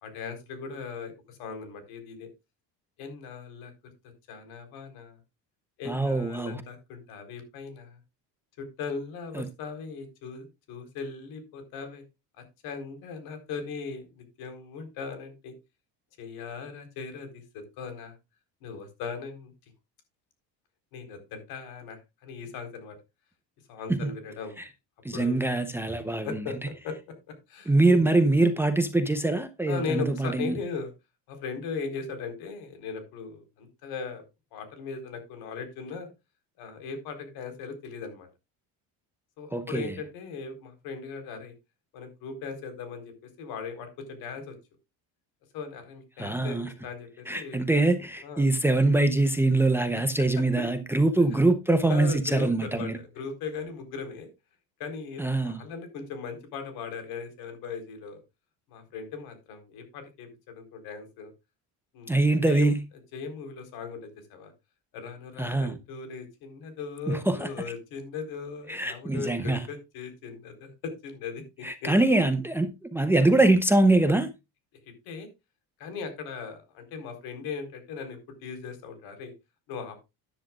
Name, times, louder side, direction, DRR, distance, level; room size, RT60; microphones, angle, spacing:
voice 1, 0.0-2.3 3.0-3.7 4.3-5.2 5.8-8.0 8.6-12.0 12.6-15.5 16.2-18.2 18.6-19.5 20.9-23.0 23.7-24.6 25.1-25.4 26.2-26.5 26.8-27.7 29.7-30.9 31.3-34.2 34.5-36.1 36.6-38.3 39.4-41.5 41.9-44.5 45.5-47.6 48.2-48.5 51.9-54.3 54.8-58.2 58.7-61.3 61.9-62.7 63.1-64.5 64.9-71.9 75.1-75.3 75.8-79.3 79.7-80.0, left 5 dB, 70° left, 4.3 m, -38 dB
voice 2, 5.9-6.6 9.3-9.5 23.9-24.1 24.6-24.7 25.0-26.4 27.7-30.5 39.5-40.0 46.2-46.7 47.3-53.0 55.2-55.6 62.1-62.8 65.4-65.7 67.1-67.5 68.7-69.7 71.6-74.3, right 2 dB, 5° right, 0.7 m, -23 dB
13.5 x 10.5 x 2.4 m
cardioid pair, 160°, 38 cm